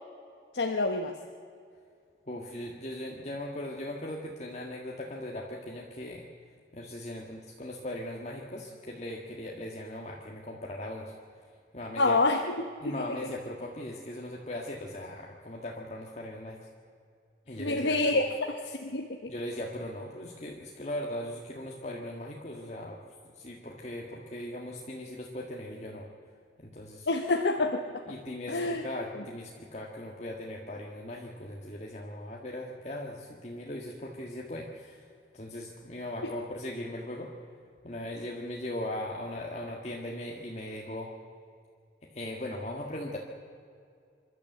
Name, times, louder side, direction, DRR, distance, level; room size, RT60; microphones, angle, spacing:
voice 1, 0.5-1.1 12.0-12.6 12.8-12.9 17.6-18.2 18.7-19.3 27.1-27.8 28.5-28.8 29.1-29.2 36.2-36.3, left 2 dB, 80° left, 4 dB, 1.2 m, -27 dB
voice 2, 2.3-6.2 6.7-11.1 11.7-12.2 12.8-16.7 17.5-18.3 19.3-23.0 23.3-26.1 26.6-27.1 28.1-35.1 35.3-37.3 37.8-41.1 42.1-43.2, left 1 dB, 40° left, -1 dB, 1.7 m, -39 dB
27.5 x 12.5 x 8.1 m, 2.3 s
head